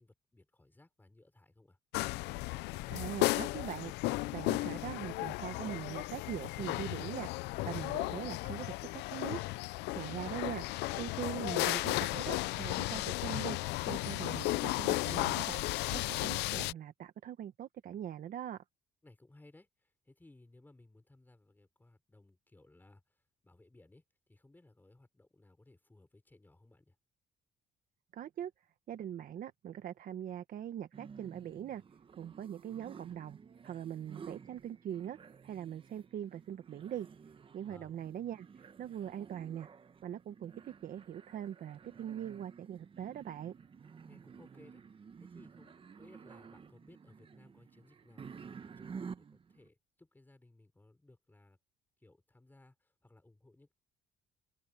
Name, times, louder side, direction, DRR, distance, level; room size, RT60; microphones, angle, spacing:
voice 1, 0.0-1.8 19.0-24.0 24.3-27.0 37.7-37.9 44.1-51.6 52.0-53.7, left 2 dB, 10° left, 6.1 m, -62 dB
sound 1, 1.9-16.7, left 20 dB, 90° left, 0.6 m, -35 dB
voice 2, 2.9-3.9 4.3-7.3 7.6-9.4 9.9-10.6 11.0-15.6 15.9-18.6 28.1-28.5 28.9-31.8 32.2-33.4 33.6-35.2 35.4-37.1 37.5-38.5 38.8-39.7 40.0-43.5, right 10 dB, 55° right, 1.3 m, -42 dB
sound 2, 30.9-49.7, right 6 dB, 30° right, 1.1 m, -52 dB
open air
cardioid pair, 110°, 17 cm